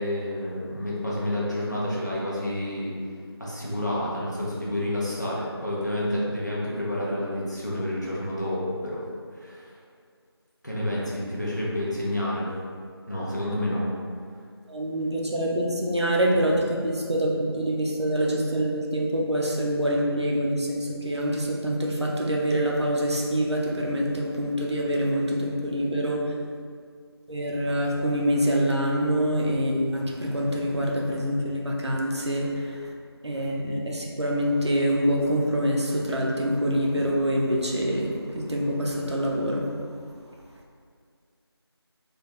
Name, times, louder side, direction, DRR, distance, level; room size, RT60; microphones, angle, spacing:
voice 1, 0.0-2.9 3.4-9.0 9.3-9.6 10.6-12.5 13.1-13.9, left 1 dB, 45° left, -7 dB, 0.7 m, -29 dB
voice 2, 14.7-26.2 27.3-32.9 33.2-39.7, equal, 85° right, -2 dB, 0.7 m, -25 dB
3.3 x 2.3 x 3.2 m, 2.1 s
figure-of-eight pair, 180°, 14 cm